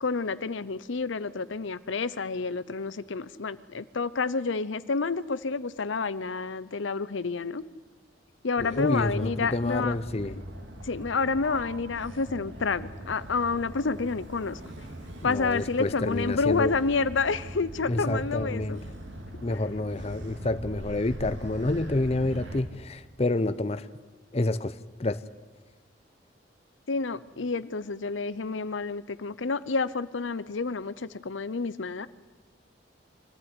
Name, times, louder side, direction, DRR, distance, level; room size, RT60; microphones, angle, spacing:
voice 1, 0.0-7.6 8.4-10.0 10.8-14.6 15.2-18.8 26.9-32.1, left 4 dB, 80° left, 16 dB, 0.7 m, -29 dB
voice 2, 8.6-10.4 15.2-16.7 17.9-18.8 19.4-23.9 24.3-24.7 25.0-25.2, left 2 dB, 35° left, 12 dB, 0.6 m, -28 dB
Motor vehicle (road), 8.6-22.6, right 1 dB, 80° right, 3.1 m, -41 dB
24.0 x 15.0 x 9.7 m, 1.4 s
head